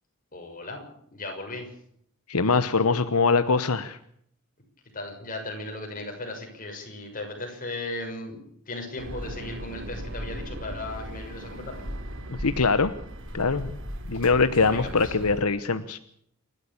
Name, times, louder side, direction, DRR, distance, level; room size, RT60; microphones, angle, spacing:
voice 1, 0.3-0.8 1.1-1.8 4.8-8.4 8.7-11.8 14.6-15.1, left 2 dB, 40° left, 3 dB, 6.4 m, -36 dB
voice 2, 2.3-4.0 12.3-12.9 13.3-13.8 14.1-16.0, left 4 dB, 80° left, 12 dB, 1.1 m, -23 dB
sound 1, 9.0-15.4, equal, 60° right, 3.4 m, -37 dB
28.5 x 12.5 x 8.6 m, 0.68 s
head